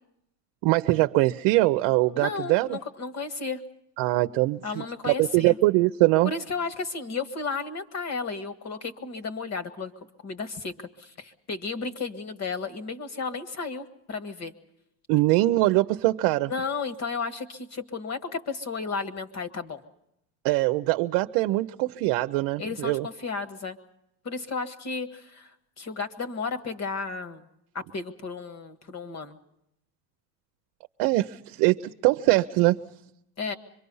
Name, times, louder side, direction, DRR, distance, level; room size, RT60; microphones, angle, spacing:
voice 1, 0.6-2.8 4.0-6.3 15.1-16.5 20.4-23.1 31.0-32.8, right 19 dB, 70° right, 0.8 m, -22 dB
voice 2, 2.1-3.6 4.6-5.6 6.2-9.9 10.2-14.5 16.5-19.8 22.6-23.8 24.2-25.5 25.8-27.5 27.7-29.4 33.4-33.6, left 4 dB, 35° left, 1.8 m, -33 dB
25.5 x 23.0 x 5.5 m
supercardioid pair, 120°, 47 cm